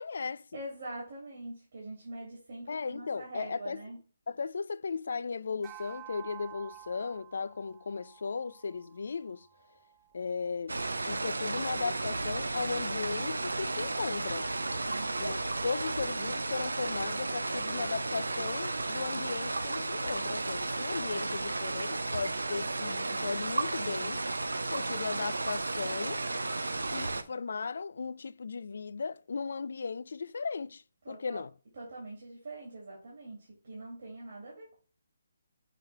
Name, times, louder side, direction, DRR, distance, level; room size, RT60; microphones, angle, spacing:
voice 1, 0.0-0.6 2.7-3.8 4.3-9.5 10.1-10.8 11.1-14.5 15.2-24.2 24.7-26.2 26.9-31.5, left 5 dB, 65° left, 0.3 m, -36 dB
voice 2, 0.5-4.0 14.9-15.1 31.0-31.4 31.7-34.7, right 2 dB, 60° right, 2.5 m, -43 dB
sound 1, 5.6-10.2, right 15 dB, 20° right, 0.4 m, -51 dB
sound 2, 10.7-27.2, right 2 dB, 90° right, 0.6 m, -33 dB
6.5 x 3.2 x 4.7 m
figure-of-eight pair, 150°, 0 cm